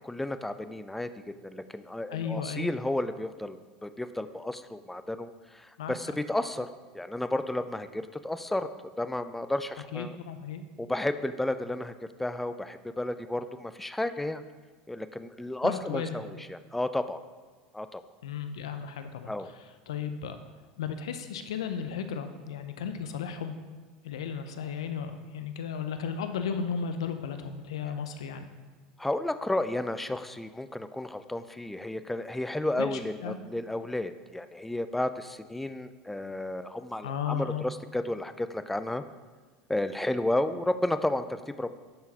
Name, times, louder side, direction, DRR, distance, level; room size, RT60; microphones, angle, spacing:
voice 1, 0.0-1.1 1.4-6.7 6.9-8.7 9.0-10.2 10.8-11.9 12.2-14.4 14.9-17.2 17.7-18.0 19.3-19.5 29.0-39.0 39.7-41.8, left 1 dB, 5° left, 11 dB, 0.3 m, -32 dB
voice 2, 2.1-2.7 5.8-5.9 9.9-10.6 15.6-16.2 18.2-19.5 19.9-20.4 20.8-23.5 24.0-28.5 32.8-33.4 37.0-37.6, left 7 dB, 85° left, 8 dB, 0.5 m, -34 dB
10.5 x 3.8 x 2.9 m, 1.4 s
hypercardioid pair, 90°, 3 cm